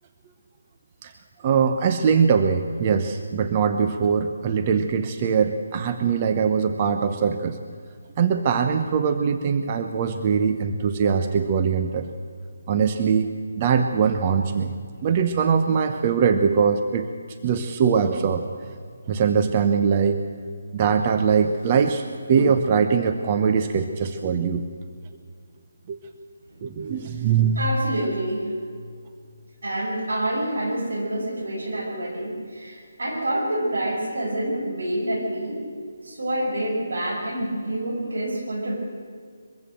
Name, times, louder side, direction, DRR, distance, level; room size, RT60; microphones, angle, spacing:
voice 1, 1.4-7.6 8.2-12.1 12.7-14.7 15.0-17.1 17.4-18.4 19.1-20.2 20.7-24.6 25.9-26.0 26.6-27.7, right 6 dB, 30° right, 7 dB, 0.9 m, -22 dB
voice 2, 27.6-28.5 29.6-35.6 36.0-38.8, right 1 dB, 85° right, 2 dB, 6.2 m, -27 dB
22.5 x 15.5 x 7.6 m, 2.1 s
hypercardioid pair, 160°, 0 cm